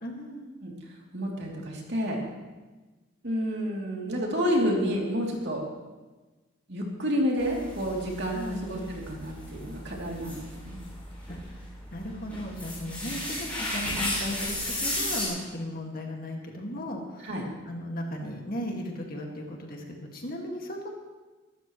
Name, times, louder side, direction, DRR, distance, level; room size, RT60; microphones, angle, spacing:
voice 1, 0.0-0.5 8.3-8.6 11.3-11.4 11.9-17.4 17.7-20.9, equal, 45° left, 1 dB, 2.0 m, -36 dB
voice 2, 1.1-2.2 3.2-5.6 6.7-10.8 17.2-17.4, equal, 55° right, -2 dB, 3.0 m, -29 dB
sound 1, 7.4-15.3, left 1 dB, 5° left, 5.9 m, -34 dB
23.5 x 12.5 x 3.2 m, 1.2 s
head